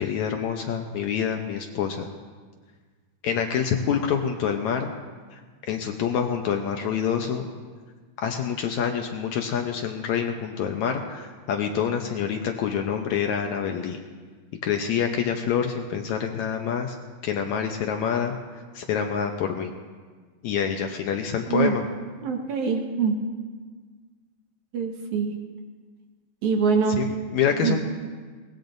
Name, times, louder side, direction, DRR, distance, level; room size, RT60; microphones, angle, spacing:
voice 1, 0.0-2.1 3.2-4.9 5.3-5.4 5.7-7.5 8.2-14.0 14.6-17.0 17.2-18.4 18.8-19.7 20.4-21.8 26.9-27.8, left 7 dB, 70° left, 3 dB, 1.9 m, -26 dB
voice 2, 21.5-21.8 22.2-23.2 24.7-25.3 26.4-27.0 27.6-27.8, right 5 dB, 65° right, 2 dB, 2.5 m, -24 dB
23.5 x 19.5 x 2.7 m, 1.5 s
omnidirectional pair, 3.9 m